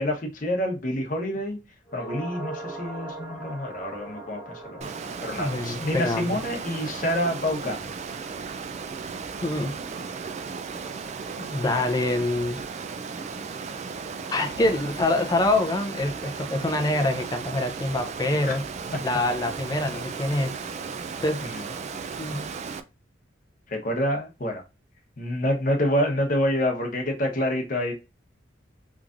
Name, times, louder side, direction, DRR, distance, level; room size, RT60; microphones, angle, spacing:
voice 1, 0.0-1.6 1.9-4.9 5.2-7.8 18.4-18.6 18.9-19.0 21.5-21.6 23.7-24.6 25.2-27.9, left 1 dB, 45° left, 0.9 m, -27 dB
sound 1, 1.9-10.3 10.6-10.7, right 2 dB, 15° right, 1.2 m, -42 dB
Water, 4.8-22.8, right 5 dB, 35° right, 0.3 m, -35 dB
voice 2, 5.4-6.4 9.4-9.8 11.4-12.6 14.3-18.6 19.0-20.6 21.2-21.5 22.2-22.5, left 2 dB, 20° left, 0.5 m, -25 dB
3.6 x 3.1 x 2.5 m
head